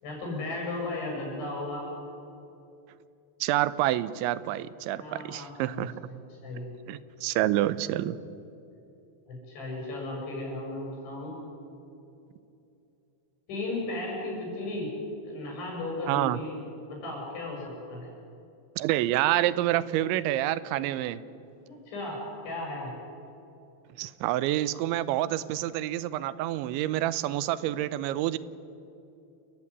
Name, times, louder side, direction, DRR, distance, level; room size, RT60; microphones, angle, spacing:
voice 1, 0.0-1.9 5.0-6.1 6.4-6.7 9.3-11.3 13.5-14.9 15.3-16.5 16.9-18.1 21.7-22.9, left 2 dB, 85° left, -2 dB, 8.8 m, -35 dB
voice 2, 3.4-5.9 6.9-8.2 16.1-16.4 18.8-21.2 24.0-28.4, right 14 dB, 90° right, 16 dB, 3.1 m, -28 dB
29.0 x 15.0 x 9.8 m, 2.7 s
omnidirectional pair, 5.2 m